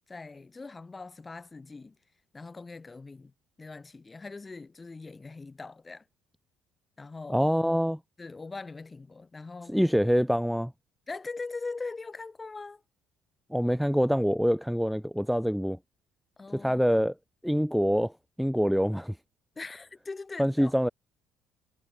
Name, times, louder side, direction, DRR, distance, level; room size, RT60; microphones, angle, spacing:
voice 1, 0.1-2.0 2.3-6.0 7.0-7.5 8.2-9.8 11.1-12.8 16.4-16.8 19.5-20.7, left 3 dB, 20° left, 1.4 m, -41 dB
voice 2, 7.3-8.0 9.7-10.7 13.5-15.8 16.5-17.1 17.4-18.1 18.4-19.2 20.4-20.9, equal, ahead, 0.6 m, -25 dB
cardioid pair, 135°, 0 cm